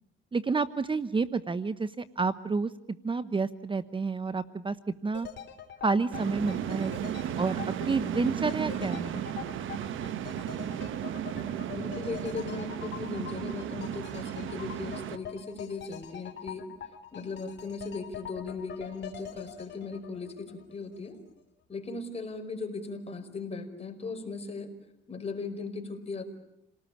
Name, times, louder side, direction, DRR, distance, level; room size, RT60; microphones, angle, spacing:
voice 1, 0.3-2.7 3.0-4.8 5.0-5.3 5.8-6.9 7.4-7.6 7.9-9.3, right 4 dB, 25° right, 13 dB, 0.9 m, -29 dB
sound 1, 5.1-21.1 21.4-21.5, left 9 dB, 65° left, 3.6 m, -44 dB
sound 2, 6.1-15.2, right 10 dB, 80° right, 1.2 m, -34 dB
voice 2, 11.7-16.7 17.1-21.2 21.7-24.7 25.1-26.3, left 4 dB, 30° left, 5 dB, 5.4 m, -38 dB
28.0 x 19.0 x 8.7 m, 0.80 s
cardioid pair, 90°, 20 cm